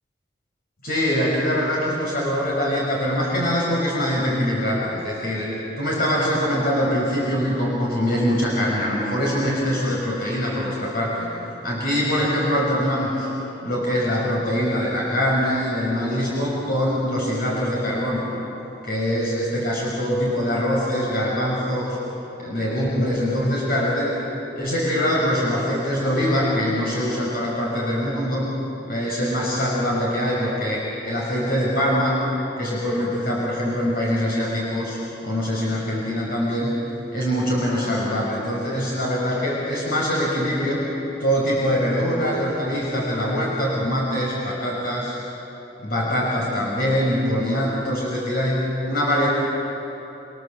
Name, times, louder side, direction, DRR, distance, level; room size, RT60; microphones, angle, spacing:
voice 1, 0.8-5.5 5.8-11.3 11.6-13.3 13.6-18.3 18.8-22.0 22.4-24.2 24.6-28.5 28.9-32.2 32.6-36.7 37.1-40.8 41.2-45.2 45.8-49.3, equal, 60° left, -5 dB, 5.9 m, -23 dB
28.0 x 27.0 x 7.6 m, 3.0 s
head